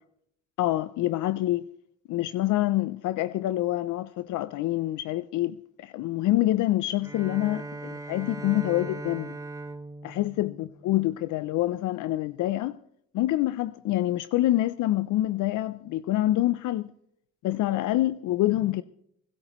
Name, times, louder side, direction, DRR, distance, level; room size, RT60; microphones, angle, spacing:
voice 1, 0.6-1.6 2.1-9.4 10.0-12.8 13.1-16.9 17.4-18.8, left 15 dB, 80° left, 0.5 m, -26 dB
Bowed string instrument, 7.0-11.4, right 2 dB, 10° right, 0.9 m, -39 dB
29.5 x 16.0 x 3.0 m
cardioid pair, 90°, 30 cm